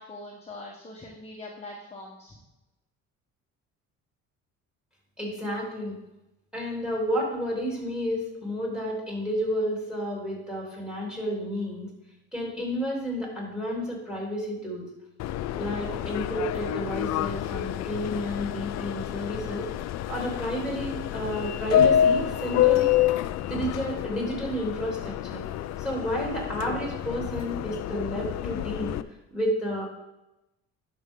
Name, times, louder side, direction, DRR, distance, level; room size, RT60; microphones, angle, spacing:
voice 1, 0.0-2.4, left 2 dB, 20° left, -3 dB, 1.3 m, -42 dB
voice 2, 5.2-5.9 6.5-11.9 12.3-14.8 15.6-19.6 20.1-22.9 23.5-25.5 25.8-28.9 29.3-29.9, equal, 5° right, -2 dB, 3.4 m, -31 dB
Subway metro underground, 15.2-29.0, left 11 dB, 65° left, 0.5 m, -28 dB
11.5 x 6.1 x 3.8 m, 0.95 s
cardioid pair, 115°, 29 cm